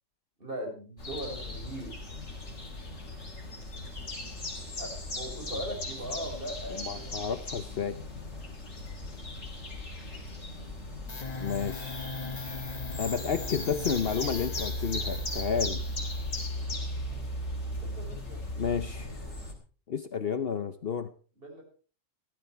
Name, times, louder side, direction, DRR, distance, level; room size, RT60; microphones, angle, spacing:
voice 1, 0.4-1.9 4.8-4.9 5.2-7.3 17.1-17.2 17.7-18.4 21.4-21.6, right 1 dB, 45° right, 2 dB, 5.2 m, -39 dB
sound 1, 1.0-19.5, left 2 dB, 70° left, 3.7 m, -39 dB
voice 2, 6.7-8.0 11.4-12.0 13.0-15.8 18.6-19.2 19.9-21.1, left 6 dB, 50° left, 12 dB, 1.0 m, -31 dB
sound 2, 11.1-19.5, left 1 dB, 30° left, 1.3 m, -37 dB
15.5 x 13.5 x 4.5 m, 0.38 s
omnidirectional pair, 1.3 m